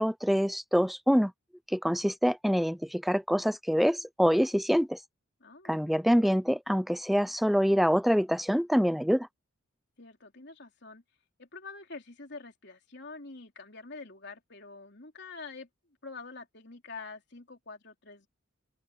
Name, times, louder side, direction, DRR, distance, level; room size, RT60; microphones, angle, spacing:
voice 1, 0.0-1.3 1.7-5.0 5.7-9.3, equal, ahead, 0.6 m, -25 dB
voice 2, 5.4-5.9 10.0-11.0 11.4-15.7 16.0-18.3, left 3 dB, 55° left, 3.9 m, -46 dB
open air
head